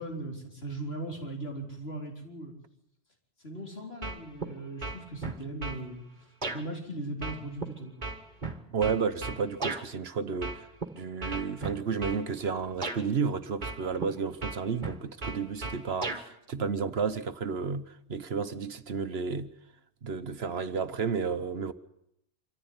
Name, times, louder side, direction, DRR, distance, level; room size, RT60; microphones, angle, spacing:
voice 1, 0.0-2.5 3.4-6.0 6.5-7.9, right 1 dB, 60° left, 4.5 m, -38 dB
sound 1, 4.0-4.5 4.8-5.8 6.4-6.6 7.2-9.8 10.4-10.9 11.2-12.2 12.8-13.0 13.6-14.1 14.4-16.2, right 3 dB, 45° right, 1.9 m, -35 dB
voice 2, 8.7-10.7 10.9-19.5 20.0-21.7, right 5 dB, 65° right, 1.3 m, -32 dB
25.0 x 14.5 x 9.6 m
omnidirectional pair, 1.2 m